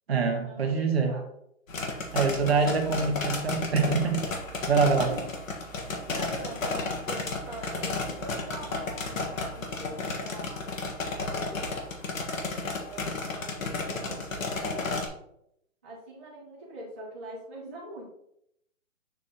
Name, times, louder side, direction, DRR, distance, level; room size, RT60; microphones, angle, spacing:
voice 1, 0.1-1.2 2.1-4.3 4.7-5.1, right 5 dB, 50° right, 1.2 m, -25 dB
sound 1, 1.7-15.1, left 3 dB, 70° left, 1.7 m, -33 dB
voice 2, 2.5-3.1 5.1-5.2 6.1-10.7 11.0-11.8 12.4-14.9 15.8-18.1, right 1 dB, 10° right, 0.7 m, -43 dB
7.2 x 4.0 x 3.9 m
hypercardioid pair, 175°, 40 cm